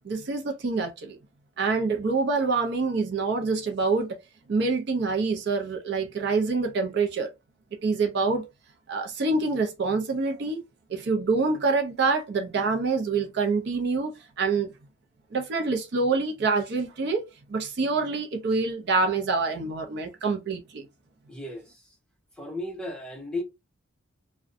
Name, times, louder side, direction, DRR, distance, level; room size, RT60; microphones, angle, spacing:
voice 1, 0.0-1.2 1.6-4.1 4.5-7.3 7.8-8.4 8.9-10.6 10.9-14.7 15.3-17.2 17.5-20.8, right 4 dB, 50° right, 0.4 m, -26 dB
voice 2, 21.3-21.9 22.4-23.4, left 1 dB, 5° left, 0.6 m, -35 dB
2.5 x 2.1 x 2.4 m
head